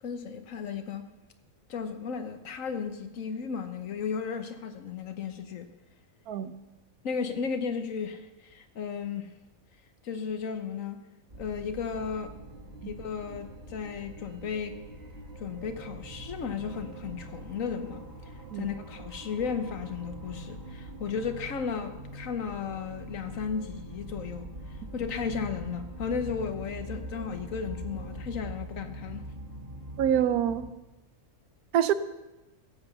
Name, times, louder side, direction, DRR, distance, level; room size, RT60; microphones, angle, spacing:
voice 1, 0.0-1.1 1.7-5.7 7.0-9.3 10.0-11.0 11.4-12.3 12.8-14.8 15.4-18.0 18.5-29.3, left 6 dB, 65° left, 1.4 m, -34 dB
sound 1, 11.3-30.7, right 1 dB, 45° right, 2.3 m, -43 dB
voice 2, 30.0-30.7 31.7-31.9, right 10 dB, 90° right, 1.2 m, -25 dB
16.0 x 7.8 x 6.9 m
omnidirectional pair, 1.5 m